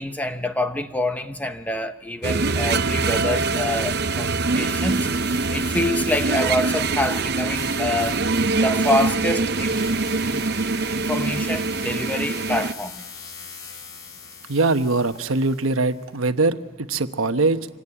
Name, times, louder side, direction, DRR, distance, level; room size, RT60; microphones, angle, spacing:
voice 1, 0.0-5.1 5.5-8.2 8.6-9.8 10.2-10.4 10.9-13.0, left 1 dB, 10° left, 0.8 m, -26 dB
sound 1, 2.2-12.7, right 3 dB, 50° right, 0.7 m, -24 dB
sound 2, 4.7-16.1, left 6 dB, 65° left, 3.6 m, -42 dB
voice 2, 14.5-17.6, right 3 dB, 85° right, 1.1 m, -22 dB
25.5 x 18.0 x 9.9 m
head